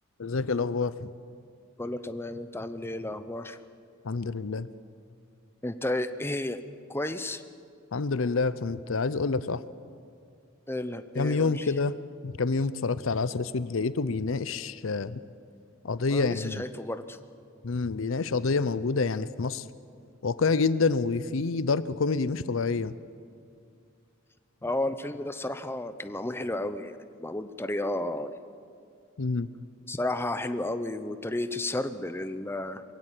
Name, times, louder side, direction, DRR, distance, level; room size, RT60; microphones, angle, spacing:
voice 1, 0.2-1.1 4.0-4.7 7.9-9.6 11.2-11.9 12.2-15.2 15.8-16.6 17.6-19.6 20.2-22.9 29.2-29.5, left 4 dB, 70° left, 16 dB, 0.6 m, -27 dB
voice 2, 1.8-3.6 5.6-6.6 6.9-7.4 10.7-11.7 16.1-17.2 24.6-28.3 29.9-32.8, left 1 dB, 10° left, 11 dB, 0.7 m, -32 dB
22.0 x 16.5 x 8.3 m, 2.3 s
head